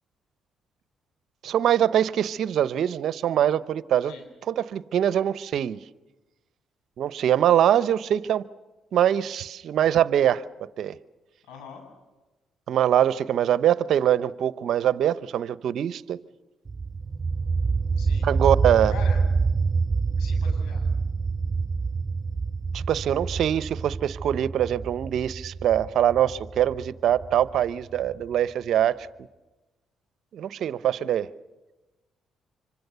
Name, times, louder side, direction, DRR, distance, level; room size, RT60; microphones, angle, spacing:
voice 1, 1.4-4.1 4.4-5.8 7.0-8.4 8.9-10.4 10.8-10.9 12.7-16.2 18.2-18.9 22.7-29.1 30.3-31.3, right 10 dB, 70° right, 16 dB, 0.8 m, -23 dB
voice 2, 11.5-11.8 18.0-18.3 18.9-19.2 20.2-20.8, left 4 dB, 85° left, 3 dB, 7.9 m, -42 dB
sound 1, 16.7-28.2, right 4 dB, 30° right, 2.3 m, -27 dB
25.5 x 25.5 x 6.9 m, 1.1 s
supercardioid pair, 60°, 0 cm